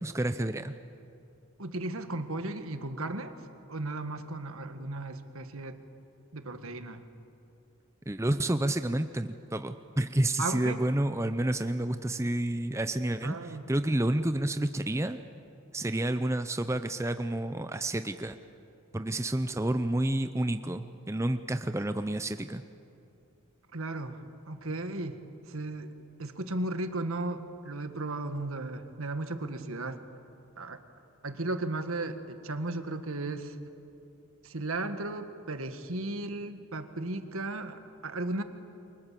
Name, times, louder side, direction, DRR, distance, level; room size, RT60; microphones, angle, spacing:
voice 1, 0.0-0.7 8.1-15.2 15.7-18.4 18.9-22.6, right 1 dB, 15° right, 9 dB, 0.5 m, -30 dB
voice 2, 1.6-3.4 3.7-5.8 6.3-7.1 10.4-10.8 13.2-13.6 23.7-25.2 25.5-25.9 26.2-30.0 30.6-30.8 31.2-33.6 34.4-38.4, right 2 dB, 75° right, 8 dB, 1.7 m, -35 dB
28.5 x 24.0 x 7.6 m, 2.6 s
head